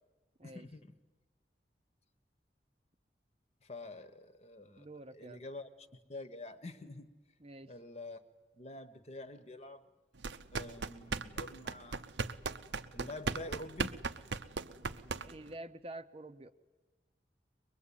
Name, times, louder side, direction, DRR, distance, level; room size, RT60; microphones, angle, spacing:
voice 1, 0.4-0.9 3.6-4.9 5.2-7.1 7.7-8.2 8.6-9.8 10.5-12.1 12.9-13.9, left 2 dB, 35° left, 10 dB, 1.2 m, -47 dB
voice 2, 4.8-5.4 7.4-7.7 15.2-16.5, right 1 dB, 35° right, 10 dB, 0.8 m, -48 dB
sound 1, 10.2-15.5, right 4 dB, 85° right, 0.8 m, -38 dB
23.0 x 21.5 x 8.6 m, 1.2 s
head